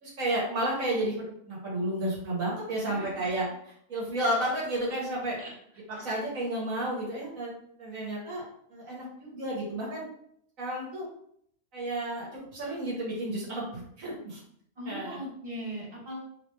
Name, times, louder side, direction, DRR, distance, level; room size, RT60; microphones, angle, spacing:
voice 1, 0.0-5.4 5.9-7.5 7.8-8.4 8.7-10.1 10.6-11.1 11.7-14.4 14.9-15.2, right 1 dB, 65° right, -4 dB, 1.5 m, -32 dB
voice 2, 2.7-3.1 5.4-5.5 14.8-16.2, equal, 15° right, -7 dB, 1.4 m, -39 dB
3.5 x 3.2 x 3.3 m, 0.68 s
omnidirectional pair, 1.6 m